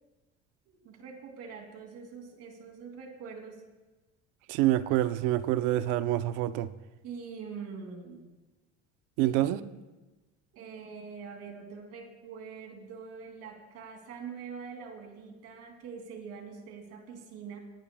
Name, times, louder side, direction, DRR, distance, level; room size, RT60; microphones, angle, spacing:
voice 1, 0.7-3.6 7.0-8.3 9.2-9.8 10.5-17.6, right 5 dB, 55° right, 3 dB, 2.7 m, -44 dB
voice 2, 4.5-6.7 9.2-9.6, right 14 dB, 90° right, 12 dB, 0.7 m, -26 dB
23.0 x 18.0 x 2.3 m, 1.1 s
cardioid pair, 170°, 30 cm